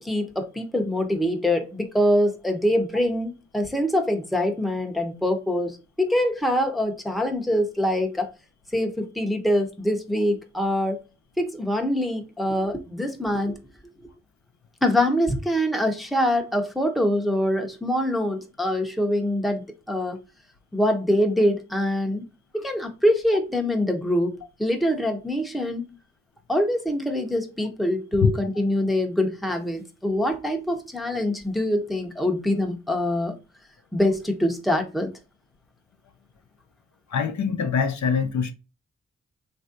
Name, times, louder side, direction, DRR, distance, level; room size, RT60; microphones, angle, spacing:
voice 1, 0.0-8.3 8.7-11.0 11.4-13.6 14.8-20.2 20.7-22.2 22.5-24.3 24.6-25.8 26.5-33.4 33.9-35.1, left 1 dB, ahead, 0.7 m, -24 dB
voice 2, 37.1-38.5, left 6 dB, 60° left, 0.6 m, -23 dB
3.2 x 2.6 x 2.5 m
cardioid pair, 45°, 31 cm